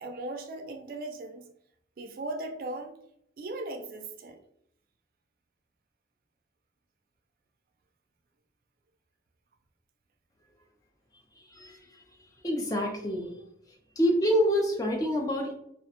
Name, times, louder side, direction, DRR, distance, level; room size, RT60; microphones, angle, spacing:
voice 1, 0.0-1.5 2.0-2.9 3.4-4.4, right 2 dB, 50° right, 4 dB, 0.3 m, -38 dB
voice 2, 12.4-13.3 14.0-15.5, equal, 20° left, 2 dB, 0.4 m, -26 dB
2.4 x 2.1 x 2.8 m, 0.74 s
head